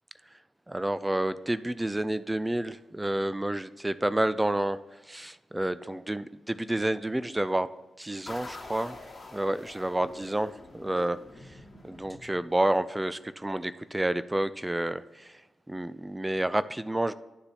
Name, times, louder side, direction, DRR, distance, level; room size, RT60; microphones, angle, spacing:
voice 1, 0.7-4.8 5.1-7.7 8.0-9.0 9.3-11.2 11.8-15.3 15.7-17.1, right 1 dB, 15° right, 15 dB, 0.3 m, -29 dB
sound 1, 8.3-12.8, left 3 dB, 35° left, 2.6 m, -46 dB
11.0 x 6.7 x 2.8 m, 1.1 s
supercardioid pair, 45°, 0 cm